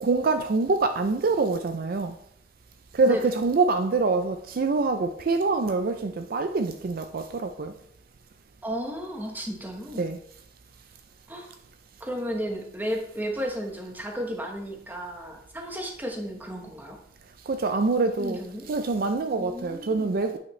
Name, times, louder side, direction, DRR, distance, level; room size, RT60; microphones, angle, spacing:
voice 1, 0.0-2.1 2.9-7.7 10.0-10.2 17.5-18.4 18.7-20.4, right 3 dB, 55° right, 0.4 m, -25 dB
voice 2, 8.6-10.1 11.3-11.5 12.0-17.0 18.2-18.7 19.4-20.1, equal, 10° right, 1.1 m, -33 dB
8.4 x 5.8 x 3.2 m
head